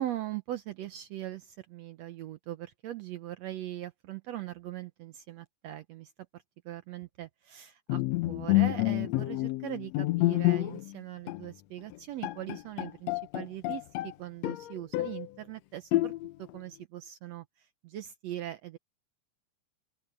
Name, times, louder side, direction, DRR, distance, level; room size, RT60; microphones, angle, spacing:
voice 1, 0.0-16.1 16.4-17.4 17.8-18.8, right 13 dB, 75° right, 1.6 m, -40 dB
Bowed string instrument, 7.9-10.9 11.3-11.5 11.9-12.0 12.2-14.1 14.4-15.3 15.9-16.5, left 19 dB, 85° left, 1.5 m, -28 dB
open air
omnidirectional pair, 3.8 m